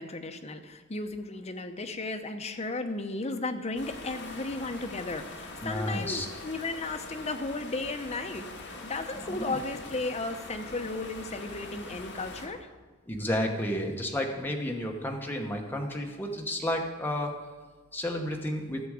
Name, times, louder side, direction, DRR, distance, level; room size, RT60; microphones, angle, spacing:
voice 1, 0.0-12.7, left 2 dB, 30° left, 6 dB, 0.7 m, -35 dB
sound 1, 3.8-12.5, left 2 dB, 55° left, 1.7 m, -43 dB
voice 2, 5.6-6.3 9.2-9.6 13.1-17.3 17.9-18.8, left 1 dB, 10° left, 1 dB, 1.0 m, -31 dB
14.5 x 6.9 x 4.9 m, 1.3 s
head